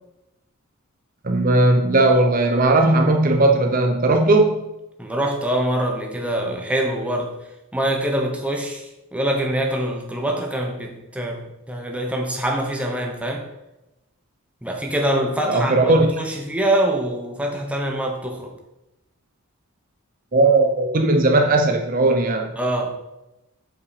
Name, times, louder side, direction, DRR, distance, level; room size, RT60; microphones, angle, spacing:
voice 1, 1.2-4.6 15.4-16.1 20.3-22.5, right 2 dB, 40° right, 3 dB, 0.7 m, -17 dB
voice 2, 5.0-7.4 7.7-13.4 14.6-18.5 22.6-23.0, right 1 dB, 5° right, 1 dB, 1.0 m, -24 dB
7.7 x 5.7 x 4.9 m, 0.95 s
head